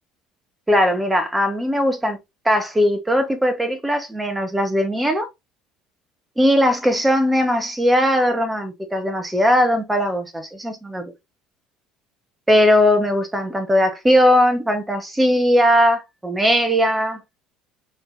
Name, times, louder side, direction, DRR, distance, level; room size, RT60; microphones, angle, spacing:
voice 1, 0.7-2.2 2.4-5.3 6.4-11.1 12.5-17.2, equal, 10° right, 1.4 m, -19 dB
4.1 x 3.5 x 2.7 m
hypercardioid pair, 65°, 0 cm